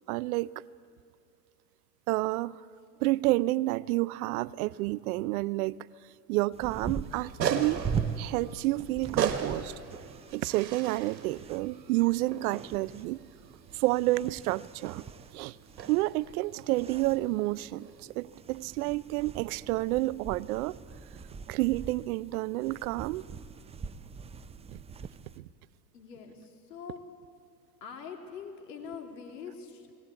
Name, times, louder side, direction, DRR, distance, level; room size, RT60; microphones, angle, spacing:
voice 1, 0.1-0.5 2.1-2.6 3.0-5.8 6.3-7.8 8.2-9.7 10.3-13.2 13.7-15.0 15.3-15.6 15.9-20.8 21.5-23.3 24.7-24.8 25.4-25.5, right 19 dB, 60° right, 0.6 m, -29 dB
sound 1, 6.5-25.4, right 6 dB, 15° right, 0.5 m, -42 dB
sound 2, 7.0-18.0, right 7 dB, 85° right, 1.6 m, -38 dB
voice 2, 25.9-27.0 27.8-29.9, left 6 dB, 75° left, 3.2 m, -44 dB
19.5 x 18.0 x 8.3 m
hypercardioid pair, 95°, 50 cm